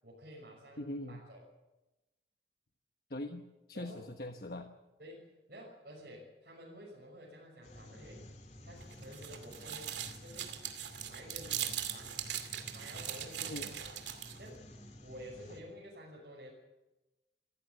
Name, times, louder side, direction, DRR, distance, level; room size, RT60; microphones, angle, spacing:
voice 1, 0.0-1.4 3.7-4.0 5.0-8.3 8.6-10.6 11.0-12.2 12.7-13.9 14.4-14.7 15.0-16.5, equal, 60° right, -5 dB, 6.3 m, -51 dB
voice 2, 0.8-1.2 3.1-3.4 3.7-4.7 13.4-13.7, left 1 dB, 55° left, 5 dB, 1.2 m, -41 dB
sound 1, 7.6-15.6, left 1 dB, 40° left, 3.1 m, -52 dB
sound 2, 8.8-14.5, right 10 dB, 85° right, 2.6 m, -40 dB
27.5 x 15.5 x 7.4 m, 1.0 s
head